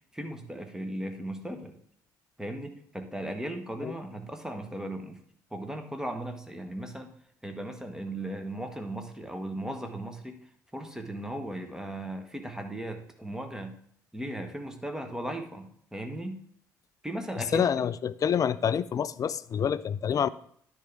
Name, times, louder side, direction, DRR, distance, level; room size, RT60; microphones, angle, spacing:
voice 1, 0.1-1.7 2.4-5.2 5.5-7.1 7.4-10.4 10.7-13.7 14.1-16.4 17.0-17.7, right 1 dB, 5° right, 6 dB, 1.3 m, -37 dB
voice 2, 17.5-20.3, left 8 dB, 35° left, 17 dB, 0.4 m, -27 dB
10.0 x 3.4 x 6.8 m, 0.63 s
figure-of-eight pair, 50°, 10 cm